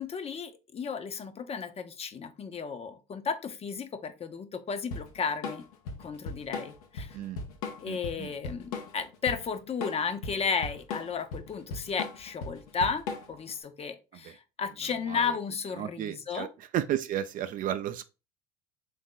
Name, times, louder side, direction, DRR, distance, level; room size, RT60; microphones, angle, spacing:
voice 1, 0.0-5.6 6.0-7.2 7.8-16.5, left 5 dB, 35° left, 0.6 m, -34 dB
Drum kit / Drum, 4.9-13.5, left 4 dB, 75° left, 0.7 m, -38 dB
voice 2, 7.8-8.3 14.2-14.3 15.1-15.4 15.8-18.1, right 11 dB, 50° right, 0.4 m, -33 dB
3.5 x 2.6 x 3.8 m
hypercardioid pair, 70°, 18 cm